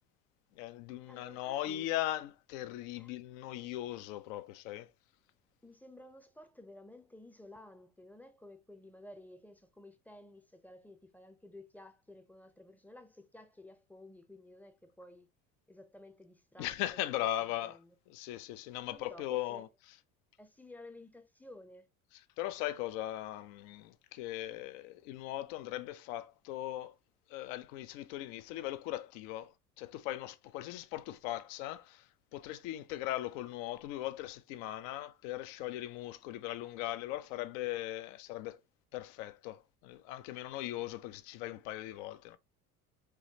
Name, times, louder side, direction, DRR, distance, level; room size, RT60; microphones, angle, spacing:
voice 1, 0.5-4.9 16.6-17.8 18.1-19.7 22.1-27.0 27.3-38.6 38.9-42.4, left 14 dB, 55° left, 0.6 m, -39 dB
voice 2, 1.1-1.9 3.0-3.1 5.6-15.3 15.7-17.2 17.6-17.9 18.8-19.6 20.4-21.9, left 1 dB, 5° left, 0.6 m, -54 dB
4.8 x 3.1 x 2.8 m
figure-of-eight pair, 60°, 44 cm